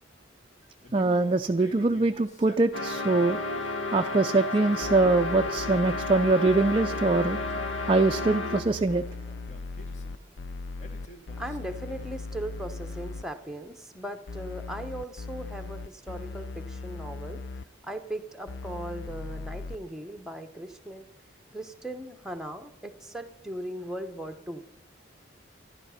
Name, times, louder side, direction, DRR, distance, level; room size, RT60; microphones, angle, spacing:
Male speech man speaking, 0.8-3.4 4.4-6.1 6.5-7.8 8.7-10.2 10.8-12.3, left 1 dB, 40° left, 1.6 m, -49 dB
voice 1, 0.9-3.4 3.9-7.4 7.9-9.0, right 3 dB, 30° right, 6 dB, 0.4 m, -23 dB
sound 1, 2.7-8.8, left 2 dB, 90° left, 1.1 m, -32 dB
sound 2, 4.8-13.2 14.3-17.7 18.5-19.8, left 3 dB, 70° left, 0.5 m, -39 dB
voice 2, 11.4-17.4 17.8-21.1 21.5-24.6, right 1 dB, 5° right, 6 dB, 0.9 m, -38 dB
12.5 x 11.5 x 5.7 m, 0.77 s
head